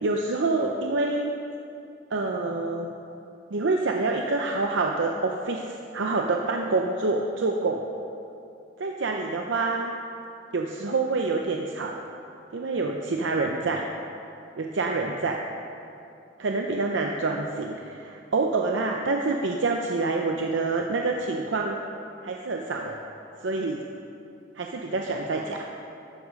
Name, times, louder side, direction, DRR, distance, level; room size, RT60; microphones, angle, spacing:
voice 1, 0.0-1.3 2.1-2.9 3.5-7.8 8.8-9.9 10.5-12.0 12.5-13.9 14.6-15.4 16.4-21.8 22.2-23.0 23.4-23.9 24.6-25.7, right 3 dB, 80° right, 1 dB, 0.6 m, -27 dB
12.5 x 7.3 x 5.2 m, 2.6 s
head